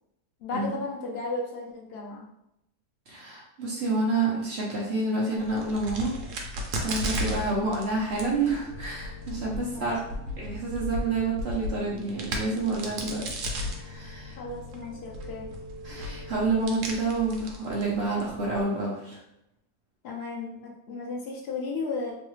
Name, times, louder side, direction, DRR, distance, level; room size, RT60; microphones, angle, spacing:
voice 1, 0.4-2.3 7.3-7.5 9.6-9.9 14.4-15.5 20.0-22.1, left 3 dB, 85° left, -3 dB, 0.5 m, -34 dB
voice 2, 3.1-6.1 6.8-10.0 10.4-14.4 15.8-19.2, right 3 dB, 55° right, -4 dB, 0.8 m, -29 dB
Crack, 5.4-18.6, equal, 75° right, 1.1 m, -36 dB
sound 1, 8.6-16.3, left 1 dB, 60° left, 1.0 m, -45 dB
3.1 x 2.3 x 3.1 m, 0.82 s
omnidirectional pair, 1.8 m